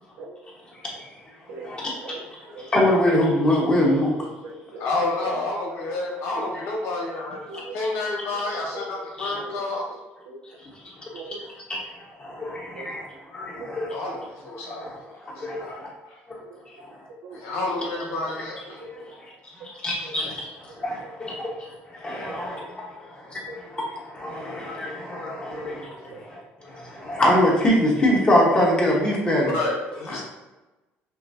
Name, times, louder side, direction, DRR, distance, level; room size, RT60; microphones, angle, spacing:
voice 1, 1.5-2.9 3.7-3.8 4.4-4.9 5.2-6.8 7.1-7.8 8.1-9.8 10.2-10.4 11.1-11.4 12.5-12.9 13.6-14.3 14.7-15.7 16.4-16.8 17.1-17.4 17.9-18.4 18.7-19.2 19.6-19.7 20.0-20.1 21.0-21.1 21.4-21.6 22.1-22.4 23.5-23.6 25.5-26.3 30.1-30.2, right 2 dB, 90° right, -1 dB, 0.9 m, -42 dB
voice 2, 2.7-4.1 6.5-6.6 9.2-9.4 10.8-10.9 11.3-11.4 11.7-13.9 14.6-15.9 16.3-16.4 17.0-17.1 17.3-17.4 19.6-29.5 30.1-30.2, left 1 dB, 25° left, -3 dB, 1.4 m, -24 dB
voice 3, 4.8-7.4 7.7-9.8 13.9-14.8 15.2-15.8 16.1-16.2 17.3-18.8 20.0-20.1 29.4-30.2, left 2 dB, 80° left, -2 dB, 1.3 m, -29 dB
5.9 x 2.3 x 2.8 m, 1.1 s
cardioid pair, 105°, 4 cm